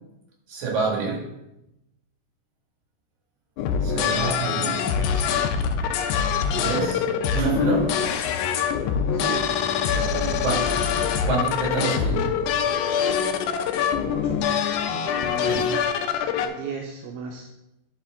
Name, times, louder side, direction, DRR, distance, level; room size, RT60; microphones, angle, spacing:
voice 1, 0.5-1.3 3.8-4.8 6.5-7.1 7.3-7.9 10.4-10.7 11.2-12.3 15.4-15.7, right 3 dB, 60° right, -1 dB, 3.1 m, -27 dB
sound 1, 3.6-16.5, left 7 dB, 90° left, 1.7 m, -24 dB
voice 2, 9.1-10.4 13.5-14.6 14.8-17.5, right 5 dB, 80° right, 1 dB, 2.4 m, -37 dB
10.5 x 5.1 x 3.6 m, 0.90 s
omnidirectional pair, 4.2 m